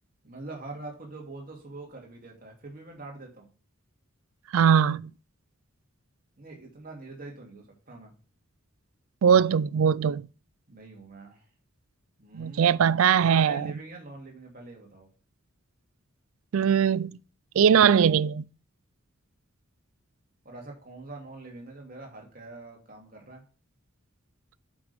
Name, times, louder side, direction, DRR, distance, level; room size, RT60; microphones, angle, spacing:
voice 1, 0.2-3.5 6.4-8.1 10.7-11.4 12.2-12.9 13.2-15.1 20.4-23.4, right 3 dB, 40° right, 2.5 m, -43 dB
voice 2, 4.5-5.1 9.2-10.3 12.3-13.7 16.5-17.2 17.6-18.4, right 7 dB, 75° right, 0.4 m, -21 dB
8.8 x 6.2 x 3.4 m
head